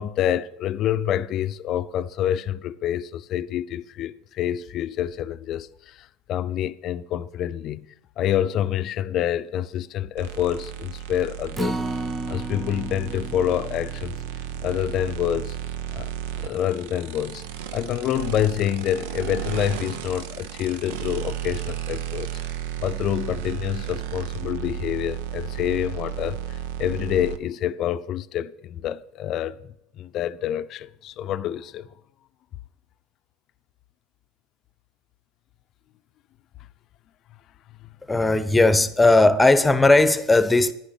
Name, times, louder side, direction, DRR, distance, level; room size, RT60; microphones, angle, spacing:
voice 1, 0.0-11.8 12.3-14.2 14.6-15.6 15.9-16.1 16.4-17.4 17.7-22.3 22.8-29.6 29.9-31.9, left 11 dB, 45° left, 0.6 m, -27 dB
sound 1, 10.2-27.4, right 10 dB, 70° right, 0.8 m, -33 dB
Acoustic guitar, 11.5-17.9 18.3-18.4 18.8-18.9, right 2 dB, 15° right, 0.7 m, -35 dB
voice 2, 38.1-40.7, left 2 dB, 10° left, 1.0 m, -17 dB
10.5 x 9.9 x 7.5 m
hypercardioid pair, 85°, 0 cm